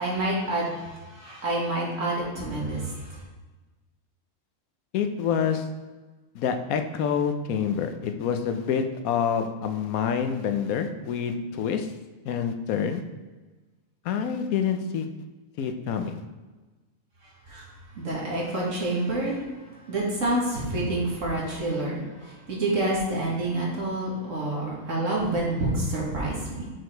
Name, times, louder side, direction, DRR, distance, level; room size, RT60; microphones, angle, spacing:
voice 1, 0.0-3.0 17.5-17.7 18.0-19.4 19.9-26.7, right 2 dB, 65° right, -4 dB, 2.1 m, -28 dB
voice 2, 4.9-5.6 6.3-11.9 12.2-13.0 14.0-15.1 15.6-16.2, left 7 dB, 85° left, 7 dB, 1.1 m, -27 dB
6.1 x 4.8 x 4.5 m, 1.3 s
omnidirectional pair, 1.5 m